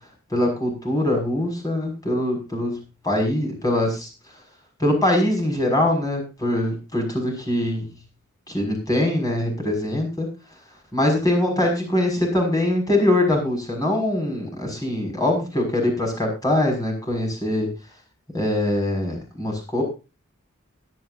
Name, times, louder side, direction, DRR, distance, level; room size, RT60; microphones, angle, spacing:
voice 1, 0.3-2.7 3.0-4.1 4.8-7.9 8.5-10.3 10.9-17.7 18.3-19.8, left 1 dB, 20° left, 1 dB, 6.1 m, -23 dB
23.0 x 9.5 x 2.7 m, 0.30 s
head